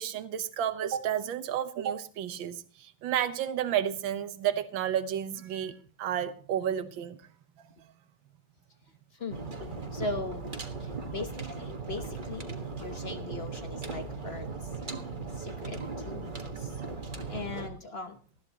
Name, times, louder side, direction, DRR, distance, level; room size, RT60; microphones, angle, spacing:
voice 1, 0.0-7.2, right 10 dB, 85° right, 10 dB, 1.7 m, -31 dB
voice 2, 9.1-9.5 9.9-10.5 10.8-14.7 15.3-16.8 17.3-18.2, left 3 dB, 45° left, 7 dB, 0.9 m, -39 dB
sound 1, 9.3-17.7, right 4 dB, 30° right, 1.4 m, -38 dB
20.0 x 14.0 x 2.9 m, 0.38 s
omnidirectional pair, 2.1 m